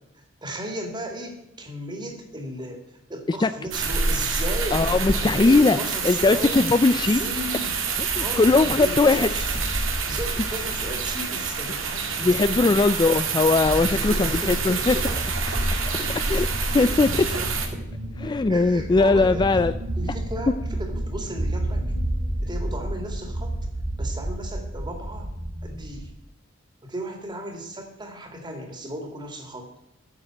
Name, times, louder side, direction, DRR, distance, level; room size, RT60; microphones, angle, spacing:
voice 1, 0.4-2.8 3.1-6.7 7.0-7.8 8.2-9.5 10.1-13.0 13.9-15.1 16.0-16.5 16.8-17.8 18.5-19.6 20.0-21.8 22.4-25.3 25.6-26.1 26.8-29.7, right 1 dB, 25° right, 4 dB, 2.4 m, -35 dB
sound 1, 3.7-17.7, right 4 dB, 90° right, 2.1 m, -27 dB
voice 2, 4.7-5.8 6.0-7.2 8.0-9.3 12.2-15.0 16.3-16.5 16.7-17.1 18.2-19.7, left 3 dB, 20° left, 12 dB, 0.3 m, -20 dB
sound 2, 7.9-26.1, right 1 dB, 50° right, 3.7 m, -32 dB
9.8 x 7.3 x 7.6 m, 0.87 s
head